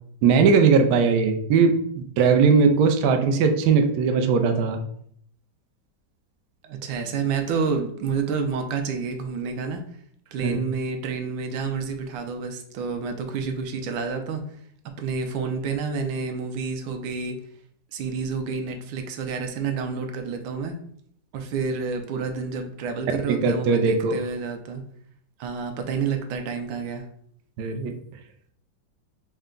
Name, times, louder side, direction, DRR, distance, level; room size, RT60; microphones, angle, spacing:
voice 1, 0.2-4.8 10.4-10.6 23.2-24.2 27.6-27.9, right 5 dB, 70° right, 5 dB, 1.0 m, -19 dB
voice 2, 6.6-9.8 10.3-14.6 15.0-17.4 17.9-20.8 21.3-24.8 25.4-27.1, right 5 dB, 90° right, 5 dB, 1.3 m, -29 dB
4.5 x 2.2 x 3.7 m, 0.65 s
omnidirectional pair, 2.0 m